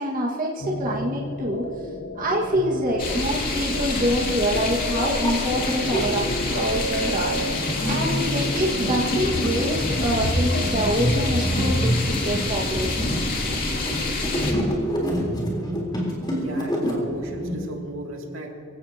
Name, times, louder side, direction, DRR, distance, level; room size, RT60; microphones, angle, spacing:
voice 1, 0.0-1.7 2.2-7.4 7.8-13.0, equal, 40° right, -4 dB, 1.9 m, -26 dB
sound 1, 0.6-11.8, left 2 dB, 90° left, 1.0 m, -33 dB
sound 2, 3.0-14.5, left 2 dB, 45° left, 2.7 m, -27 dB
sound 3, 5.2-6.0 6.6-17.5, equal, 20° left, 4.0 m, -26 dB
voice 2, 16.3-18.6, right 1 dB, 75° right, 0 dB, 2.7 m, -36 dB
26.0 x 16.5 x 3.0 m, 2.7 s
head